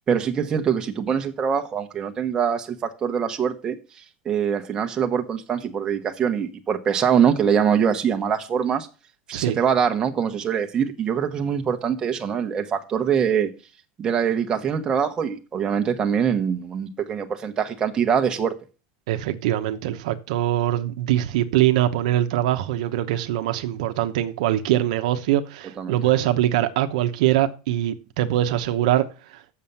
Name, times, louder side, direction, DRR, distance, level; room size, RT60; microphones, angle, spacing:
voice 1, 0.1-3.8 4.2-8.9 9.3-13.5 14.0-18.5 25.8-26.0, right 7 dB, 20° right, 1.1 m, -23 dB
voice 2, 19.1-29.0, right 13 dB, 75° right, 0.9 m, -22 dB
7.3 x 6.8 x 7.0 m
supercardioid pair, 155°, 4 cm